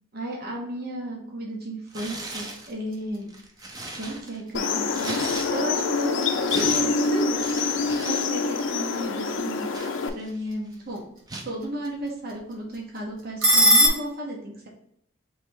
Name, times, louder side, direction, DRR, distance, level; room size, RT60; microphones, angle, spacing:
voice 1, 0.1-3.3 4.0-7.4 8.1-9.7 10.1-11.0 11.5-14.7, right 1 dB, 55° right, -1 dB, 0.9 m, -33 dB
Tearing, 1.9-2.7 3.2-5.9 6.2-8.3 8.6-8.8 9.3-10.5 11.3-11.5, right 2 dB, 20° right, 0.6 m, -38 dB
sound 1, 2.4-13.9, equal, 90° right, 1.5 m, -29 dB
sound 2, 4.5-10.1, left 4 dB, 75° left, 0.5 m, -26 dB
3.3 x 3.2 x 4.5 m, 0.72 s
head